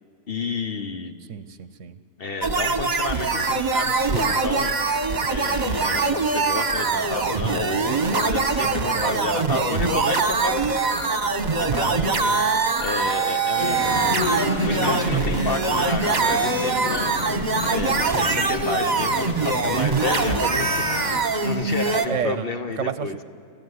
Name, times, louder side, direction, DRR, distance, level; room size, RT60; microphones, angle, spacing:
voice 1, 0.3-1.1 2.2-4.7 5.3-10.9 11.4-12.4 12.8-17.2 17.7-23.2, left 4 dB, 45° left, 8 dB, 1.1 m, -31 dB
voice 2, 1.3-2.0 8.9-9.8 11.9-12.2 22.1-22.5 22.8-23.2, right 7 dB, 60° right, 13 dB, 1.1 m, -31 dB
sound 1, 2.4-22.1, right 4 dB, 35° right, 1.3 m, -23 dB
sound 2, 13.6-21.2, left 3 dB, 75° left, 2.2 m, -30 dB
29.5 x 14.5 x 9.6 m, 2.5 s
omnidirectional pair, 1.5 m